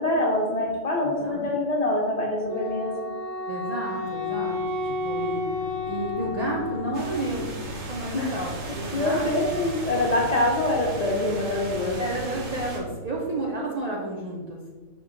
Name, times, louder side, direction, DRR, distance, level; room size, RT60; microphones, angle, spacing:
voice 1, 0.0-2.9 8.1-8.3 8.9-12.0, left 1 dB, 65° left, -4 dB, 0.3 m, -25 dB
voice 2, 1.0-1.5 3.5-5.4 5.9-9.6 12.0-14.6, right 1 dB, 80° right, -3 dB, 0.3 m, -32 dB
Wind instrument woodwind instrument, 2.5-7.3, left 3 dB, 20° right, 1.4 m, -31 dB
sound 1, 3.8-13.5, right 1 dB, 30° left, 0.6 m, -40 dB
sound 2, 6.9-12.8, right 2 dB, 55° right, 0.7 m, -38 dB
5.9 x 2.2 x 2.5 m, 1.3 s
omnidirectional pair, 1.4 m